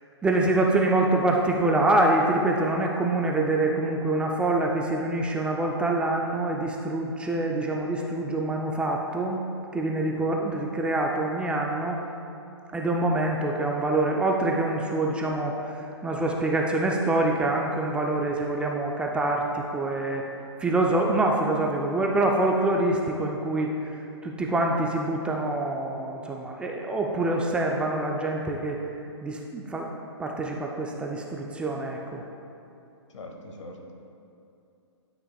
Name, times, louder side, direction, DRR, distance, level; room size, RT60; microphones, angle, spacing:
voice 1, 0.2-9.5 9.7-12.0 12.7-20.2 20.6-23.9 24.2-28.8 29.2-29.9 30.2-32.2, right 2 dB, 5° right, 0 dB, 0.3 m, -25 dB
voice 2, 33.1-33.9, left 1 dB, 80° left, 2 dB, 1.2 m, -42 dB
11.5 x 5.9 x 2.3 m, 2.7 s
hypercardioid pair, 140°, 15 cm